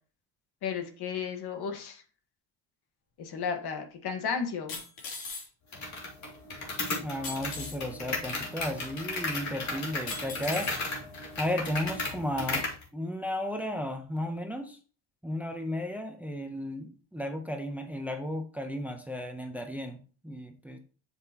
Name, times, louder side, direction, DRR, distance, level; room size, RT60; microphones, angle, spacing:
voice 1, 0.6-2.0 3.2-4.8, left 6 dB, 60° left, 6 dB, 1.6 m, -33 dB
sound 1, 3.4-3.5 4.7-5.5 7.2-7.8 8.8-8.9 10.1-10.8 11.5-11.6, left 4 dB, 85° left, 3.5 m, -39 dB
sound 2, 5.7-12.8, left 3 dB, 40° left, 2.3 m, -35 dB
voice 2, 7.0-10.7 11.4-12.7 12.9-14.8 15.2-20.0 20.2-20.8, left 1 dB, 5° right, 5 dB, 0.8 m, -34 dB
7.6 x 7.5 x 3.0 m, 0.38 s
cardioid pair, 125°, 44 cm